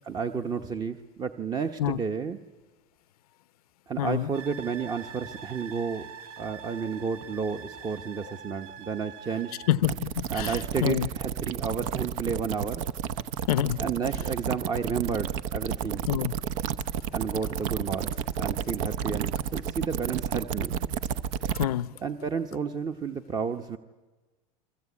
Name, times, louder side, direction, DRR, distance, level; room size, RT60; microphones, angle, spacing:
voice 1, 0.1-2.4 3.9-6.1 6.4-9.5 10.3-12.8 13.8-16.1 17.1-18.1 18.4-20.8 22.0-23.8, right 6 dB, 20° right, 7 dB, 0.9 m, -31 dB
voice 2, 4.0-4.3 9.7-11.1 13.5-13.8 16.1-16.3 21.5-22.0, left 12 dB, 90° left, 17 dB, 0.8 m, -27 dB
sound 1, 4.3-9.8, right 7 dB, 90° right, 1.3 m, -44 dB
sound 2, 9.8-21.7, right 8 dB, 65° right, 0.9 m, -31 dB
29.0 x 22.5 x 8.5 m, 1.2 s
supercardioid pair, 135°, 18 cm